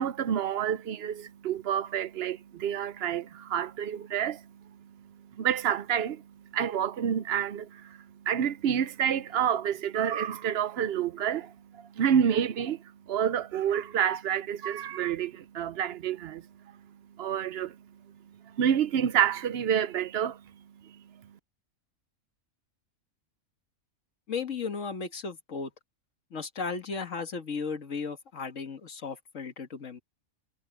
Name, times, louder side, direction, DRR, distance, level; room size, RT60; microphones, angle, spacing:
voice 1, 0.0-16.4 17.2-17.8 18.4-20.4 20.8-21.0, right 9 dB, 60° right, 0.7 m, -29 dB
voice 2, 24.3-25.7 26.3-30.0, left 5 dB, 60° left, 2.1 m, -35 dB
omnidirectional pair, 1.5 m